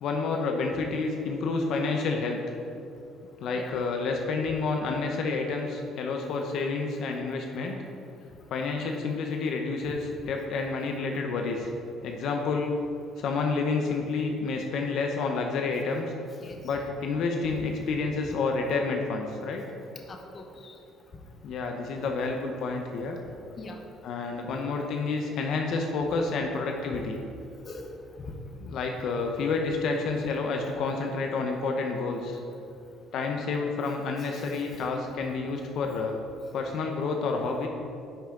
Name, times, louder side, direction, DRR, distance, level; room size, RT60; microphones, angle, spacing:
voice 1, 0.0-2.4 3.4-7.8 8.5-10.0 10.3-11.7 12.0-12.8 13.2-16.0 16.6-19.6 21.4-23.2 24.0-27.2 28.7-32.4 33.1-36.2 36.5-37.7, left 4 dB, 65° left, 2 dB, 0.8 m, -29 dB
voice 2, 20.1-20.8 23.6-23.8 26.9-27.0 27.7-27.9 28.2-28.3 34.3-34.8, left 3 dB, 35° left, 3 dB, 1.0 m, -42 dB
10.0 x 5.8 x 3.8 m, 2.6 s
cardioid pair, 105°, 0 cm